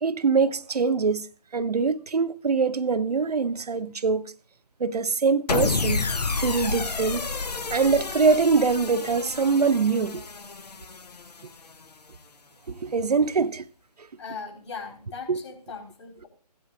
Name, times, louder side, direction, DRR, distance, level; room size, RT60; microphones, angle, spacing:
voice 1, 0.0-1.3 1.5-4.3 4.8-6.1 6.3-7.3 7.7-10.2 12.7-13.6 15.3-15.4, right 5 dB, 70° right, 0.7 m, -23 dB
sound 1, 5.5-11.8, left 4 dB, 75° left, 0.7 m, -30 dB
voice 2, 14.2-16.3, left 5 dB, 45° left, 4.2 m, -39 dB
16.0 x 10.0 x 2.4 m
figure-of-eight pair, 150°, 21 cm